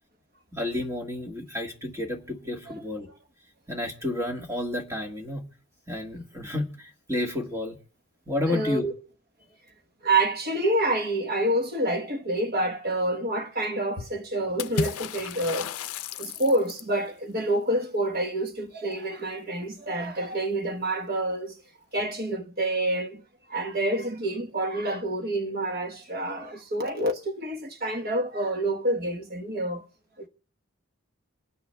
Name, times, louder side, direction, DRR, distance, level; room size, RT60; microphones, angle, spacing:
voice 1, 0.5-3.1 3.7-5.5 5.9-7.8 8.3-8.9, left 1 dB, 15° right, 1.4 m, -31 dB
voice 2, 8.5-8.9 10.0-15.8 16.2-21.5 21.9-23.2 23.5-29.8 30.2-30.3, right 1 dB, 45° right, 1.1 m, -28 dB
Water / Splash splatter, 14.6-17.0, left 7 dB, 85° left, 0.5 m, -33 dB
27.5 x 9.7 x 2.2 m
head